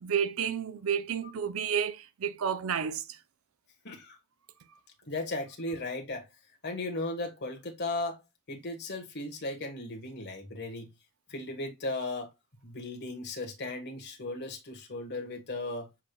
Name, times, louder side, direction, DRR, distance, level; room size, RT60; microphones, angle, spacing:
voice 1, 0.0-3.2, right 7 dB, 65° right, 0.5 m, -31 dB
voice 2, 3.8-4.2 5.1-6.3 6.6-8.2 8.5-10.9 11.3-12.3 12.6-15.9, left 2 dB, 50° left, 1.2 m, -36 dB
7.2 x 3.3 x 2.2 m
head